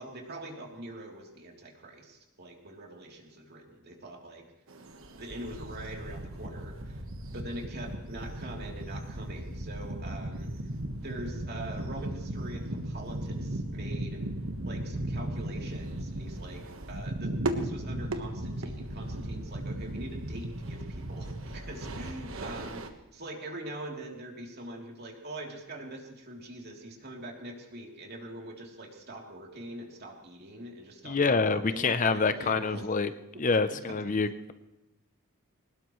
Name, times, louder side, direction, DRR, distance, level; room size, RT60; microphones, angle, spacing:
voice 1, 0.0-4.4 5.1-7.0 7.3-10.5 11.0-14.2 14.6-16.6 16.9-32.9 33.8-34.2, right 1 dB, 50° right, 0 dB, 3.1 m, -43 dB
sound 1, 4.7-22.9, right 1 dB, 65° right, 1.4 m, -36 dB
voice 2, 31.0-33.1 33.4-34.5, left 4 dB, 35° left, 11 dB, 0.6 m, -26 dB
22.0 x 19.5 x 3.1 m, 0.97 s
head